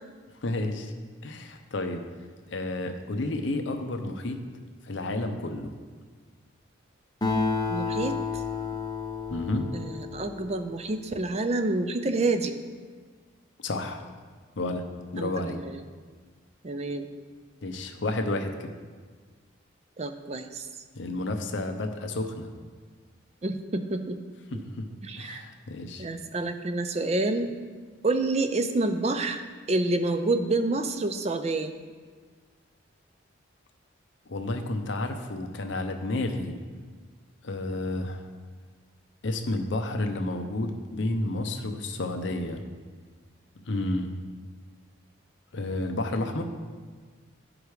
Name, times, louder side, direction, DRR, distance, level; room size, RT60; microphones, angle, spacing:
voice 1, 0.4-0.9 1.2-2.0 2.5-4.4 4.8-5.7 9.3-9.7 13.6-14.0 14.6-14.8 15.1-15.6 17.6-18.7 21.0-22.5 24.5-24.9 25.2-26.1 34.3-36.6 37.4-38.2 39.2-42.6 43.6-44.1 45.5-46.4, left 2 dB, 65° left, 6 dB, 0.7 m, -31 dB
Acoustic guitar, 7.2-11.0, left 4 dB, 20° left, 1.0 m, -31 dB
voice 2, 7.7-8.4 9.7-12.5 15.2-15.8 16.6-17.1 20.0-20.7 23.4-24.2 24.5-24.6 25.0-25.4 26.0-27.5 28.0-29.4 29.7-31.7, right 2 dB, 30° right, 8 dB, 0.4 m, -28 dB
10.0 x 5.0 x 4.8 m, 1.5 s
head